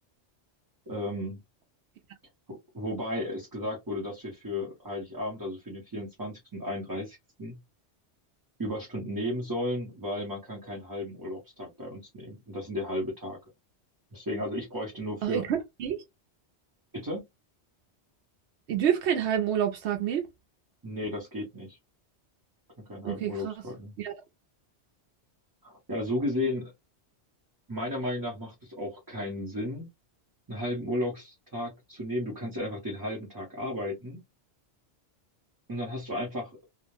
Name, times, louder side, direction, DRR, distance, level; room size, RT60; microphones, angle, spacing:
voice 1, 0.9-1.4 2.5-7.6 8.6-13.4 14.1-15.4 16.9-17.3 20.8-21.8 22.8-23.9 25.6-26.7 27.7-29.9 30.5-34.2 35.7-36.6, left 1 dB, 20° right, 0.8 m, -34 dB
voice 2, 15.2-16.0 18.7-20.3 23.0-23.5 24.0-24.1, right 9 dB, 80° right, 0.9 m, -28 dB
2.4 x 2.1 x 2.9 m
omnidirectional pair, 1.1 m